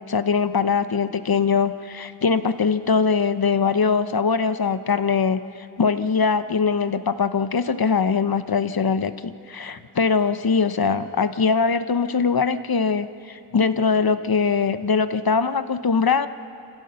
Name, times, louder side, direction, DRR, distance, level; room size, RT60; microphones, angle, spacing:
voice 1, 0.0-5.4 5.8-16.3, left 5 dB, 55° left, 12 dB, 0.8 m, -22 dB
27.5 x 15.5 x 6.9 m, 2.9 s
wide cardioid pair, 60°, 44 cm